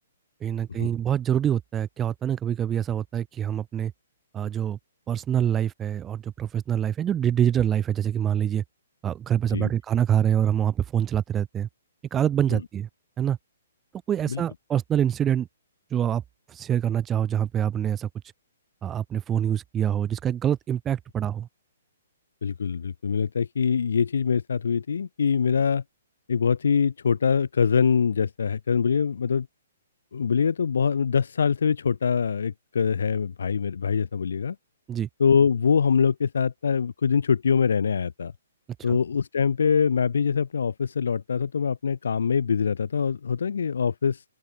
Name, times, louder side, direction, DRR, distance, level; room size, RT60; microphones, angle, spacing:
voice 1, 0.4-3.9 4.3-4.8 5.1-8.6 9.0-11.7 12.1-12.9 13.2-13.4 14.1-15.5 15.9-16.2 16.5-18.1 18.8-21.5 34.9-35.1 38.9-39.0, right 9 dB, 15° right, 1.3 m, -25 dB
voice 2, 22.4-25.8 26.3-29.5 30.1-34.6 35.2-38.3 38.8-44.2, left 6 dB, 80° left, 0.8 m, -24 dB
open air
hypercardioid pair, 155°, 0 cm